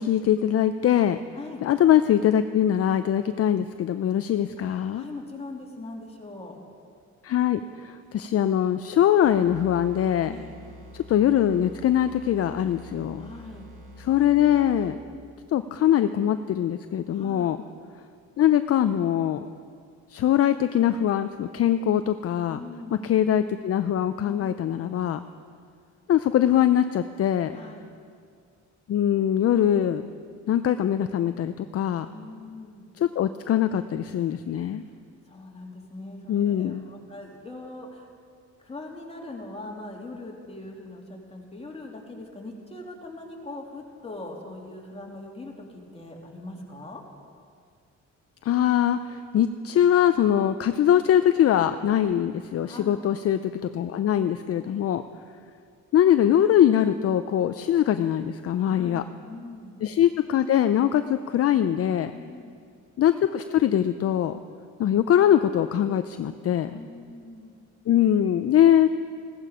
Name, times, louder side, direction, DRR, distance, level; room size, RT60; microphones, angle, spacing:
voice 1, 0.0-1.2 1.6-5.0 7.2-10.3 10.9-13.3 14.0-15.0 15.5-17.6 18.4-19.4 20.1-22.6 23.0-25.2 26.1-27.5 28.9-30.1 30.5-32.1 33.0-34.8 36.3-36.8 48.4-55.0 55.9-59.0 59.8-62.1 63.0-64.4 64.8-66.8 67.9-68.9, left 10 dB, 50° left, 10 dB, 0.5 m, -22 dB
voice 2, 4.6-6.5 10.3-10.6 13.2-13.7 17.1-17.6 22.5-23.1 24.2-24.8 27.5-27.9 32.0-32.9 35.3-38.1 38.6-47.0 52.6-53.1 54.6-54.9 58.5-59.7 62.1-62.6 66.7-67.6, left 2 dB, 20° left, -1 dB, 2.6 m, -41 dB
sound 1, 9.2-15.3, equal, 30° right, 3.0 m, -46 dB
16.0 x 13.5 x 5.0 m, 2.2 s
cardioid pair, 90°, 30 cm